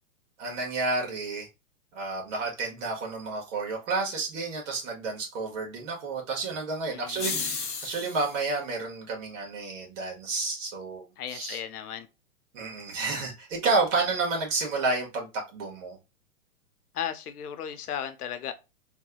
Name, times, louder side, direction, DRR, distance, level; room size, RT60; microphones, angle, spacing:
voice 1, 0.4-1.5 1.9-11.6 12.5-16.0, right 3 dB, 55° right, 1.8 m, -30 dB
voice 2, 6.9-7.5 11.2-12.1 16.9-18.5, left 9 dB, 80° left, 0.8 m, -35 dB
sound 1, 7.1-8.4, left 4 dB, 15° left, 0.6 m, -33 dB
3.4 x 3.1 x 2.3 m
hypercardioid pair, 140°, 45 cm